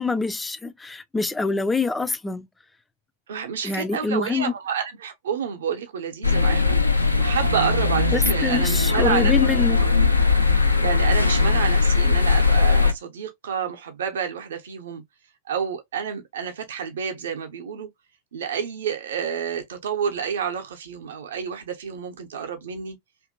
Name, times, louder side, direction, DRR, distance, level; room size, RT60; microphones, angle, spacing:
voice 1, 0.0-2.5 3.6-4.5 8.1-9.8, left 4 dB, 10° left, 0.3 m, -25 dB
voice 2, 3.3-9.9 10.8-15.0 15.5-17.9 18.3-23.0, right 7 dB, 60° right, 0.7 m, -29 dB
sound 1, 6.2-12.9, left 4 dB, 85° left, 0.4 m, -19 dB
2.7 x 2.6 x 2.4 m
figure-of-eight pair, 90°, 0 cm